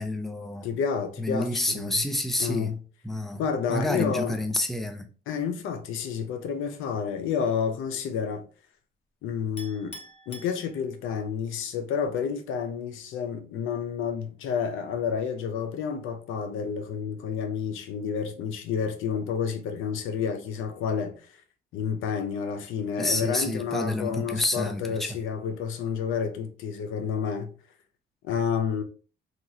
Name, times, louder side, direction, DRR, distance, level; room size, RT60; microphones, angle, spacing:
voice 1, 0.0-0.7 1.2-2.7 3.0-3.4 3.7-5.1 23.0-25.2, left 1 dB, ahead, 0.4 m, -29 dB
voice 2, 0.6-1.9 2.4-2.8 3.3-4.4 5.3-8.4 9.2-10.0 10.3-21.3 21.7-27.5 28.2-28.8, left 7 dB, 85° left, 0.6 m, -30 dB
Chink clink, 9.6-11.2, left 1 dB, 30° left, 0.8 m, -46 dB
2.9 x 2.4 x 2.7 m
cardioid pair, 90°, 20 cm